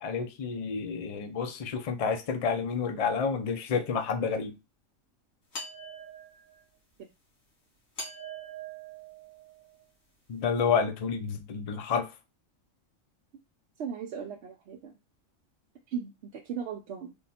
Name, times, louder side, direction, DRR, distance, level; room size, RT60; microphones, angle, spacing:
voice 1, 0.0-4.5 10.3-12.1, left 6 dB, 65° left, 0.3 m, -29 dB
sound 1, 5.5-6.6 8.0-9.8, right 2 dB, 85° left, 1.9 m, -42 dB
voice 2, 13.8-14.9 15.9-17.1, right 7 dB, 65° right, 0.8 m, -37 dB
3.5 x 2.2 x 4.2 m
omnidirectional pair, 1.4 m